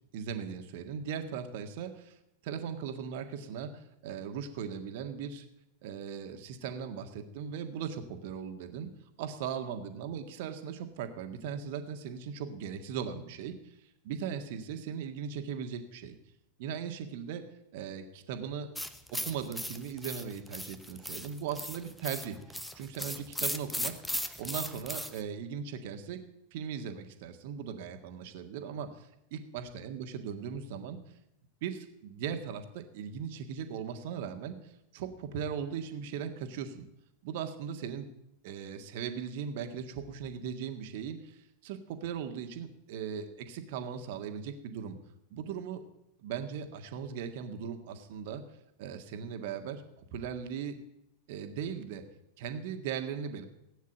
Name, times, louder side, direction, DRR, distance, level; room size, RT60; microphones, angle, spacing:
voice 1, 0.1-2.2 2.4-5.5 5.8-8.9 9.2-13.8 14.0-16.2 16.6-17.4 17.7-18.7 19.2-23.9 24.4-26.2 26.5-31.0 31.6-36.9 37.2-38.1 38.4-45.0 45.3-45.8 46.2-48.4 48.8-50.8 51.3-52.0 52.4-53.5, right 7 dB, 50° right, 7 dB, 1.8 m, -38 dB
sound 1, 18.8-25.2, left 1 dB, 5° left, 1.0 m, -37 dB
16.5 x 9.5 x 9.0 m, 0.84 s
figure-of-eight pair, 90°, 0 cm